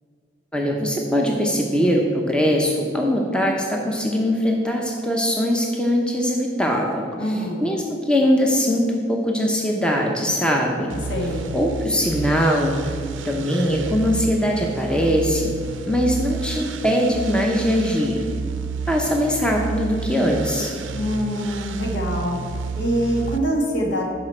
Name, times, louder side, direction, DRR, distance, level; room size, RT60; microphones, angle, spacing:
voice 1, 0.5-10.9 11.5-12.9 13.2-15.5 15.9-18.2 18.9-20.7, equal, 5° left, 0 dB, 0.7 m, -21 dB
voice 2, 7.2-7.7 11.1-11.5 20.9-22.4 22.8-24.0, equal, 70° left, -1 dB, 1.6 m, -24 dB
sound 1, 10.9-23.4, right 4 dB, 90° right, 0.6 m, -31 dB
12.5 x 5.0 x 4.4 m, 2.3 s
head